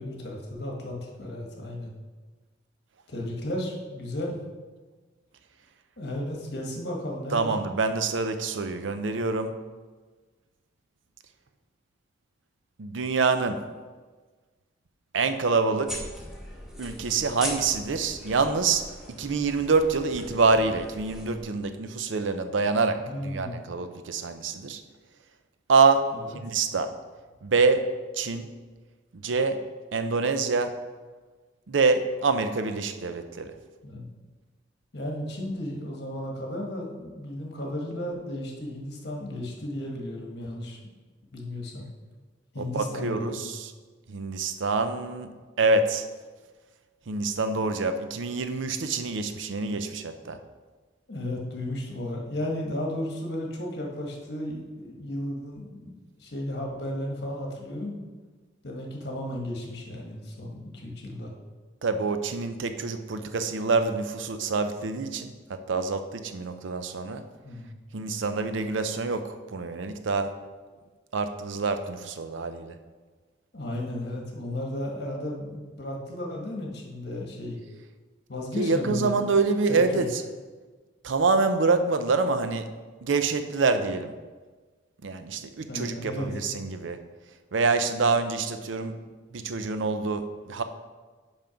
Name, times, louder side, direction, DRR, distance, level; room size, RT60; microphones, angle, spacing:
voice 1, 0.0-1.9 3.1-4.4 6.0-7.5 23.0-23.6 26.1-26.4 33.8-34.1 34.9-40.8 41.3-41.9 42.5-43.4 51.1-58.0 58.6-61.3 67.4-67.7 73.5-77.6 78.3-79.2 79.7-80.1 85.7-86.3, left 1 dB, 60° left, -1 dB, 1.3 m, -34 dB
voice 2, 7.3-9.5 12.8-13.6 15.1-15.9 16.8-18.8 19.2-24.8 25.7-26.0 26.3-26.9 27.4-28.5 29.2-29.6 29.9-30.7 31.7-33.5 42.6-43.7 44.1-46.1 47.1-50.4 61.8-67.2 67.9-70.3 71.1-72.8 78.6-80.2 81.0-82.7 83.0-84.1 85.0-87.0 87.5-89.0 89.3-90.6, right 4 dB, 80° right, 9 dB, 0.5 m, -26 dB
sound 1, 15.9-21.4, equal, 5° right, 1.1 m, -40 dB
5.8 x 5.2 x 5.1 m, 1.3 s
head